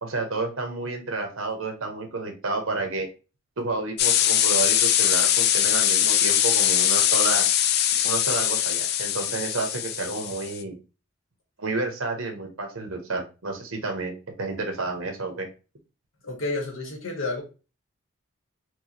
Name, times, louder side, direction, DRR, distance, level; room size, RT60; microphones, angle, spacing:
voice 1, 0.0-3.1 3.6-7.5 8.0-10.8 11.6-14.1 14.4-15.5, right 3 dB, 85° right, 4 dB, 1.0 m, -30 dB
sound 1, 4.0-10.6, left 10 dB, 50° left, 0.4 m, -22 dB
voice 2, 16.2-17.4, left 2 dB, 75° left, 0 dB, 1.5 m, -30 dB
4.6 x 2.3 x 2.8 m, 0.31 s
head